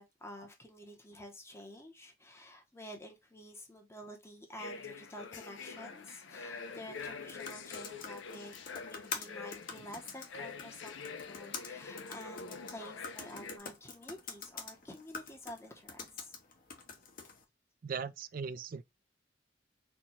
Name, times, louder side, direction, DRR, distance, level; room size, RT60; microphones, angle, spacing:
voice 1, 0.0-16.3, equal, 15° left, 0.8 m, -50 dB
sound 1, 4.6-13.6, left 5 dB, 80° left, 0.6 m, -46 dB
sound 2, 6.9-17.4, left 5 dB, 50° left, 0.9 m, -47 dB
voice 2, 17.8-18.8, right 6 dB, 50° right, 0.3 m, -39 dB
4.4 x 2.2 x 4.1 m
head